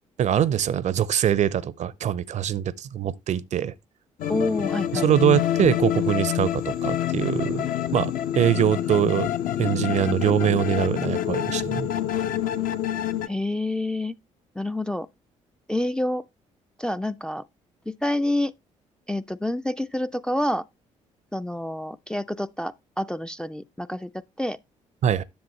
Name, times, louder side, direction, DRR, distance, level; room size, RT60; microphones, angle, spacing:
voice 1, 0.2-3.7 4.9-7.7 7.9-9.3 9.6-11.9 25.0-25.2, right 10 dB, 45° right, 0.6 m, -23 dB
sound 1, 4.2-13.3, left 11 dB, 55° left, 0.8 m, -27 dB
voice 2, 4.3-5.1 13.3-14.2 14.6-15.1 15.7-16.2 16.8-17.4 17.9-18.5 19.1-20.6 21.3-24.1 24.4-24.6, left 1 dB, 5° left, 0.4 m, -28 dB
10.0 x 7.2 x 3.1 m
figure-of-eight pair, 45°, 17 cm